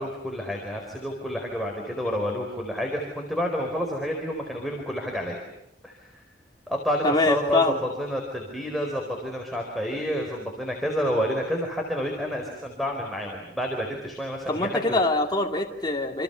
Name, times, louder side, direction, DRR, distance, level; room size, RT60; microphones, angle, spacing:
voice 1, 0.0-5.4 5.8-6.2 6.7-15.0, equal, ahead, -1 dB, 4.4 m, -29 dB
voice 2, 7.0-7.8 14.5-16.2, left 2 dB, 25° left, 1 dB, 2.6 m, -24 dB
28.5 x 28.0 x 7.0 m, 0.81 s
head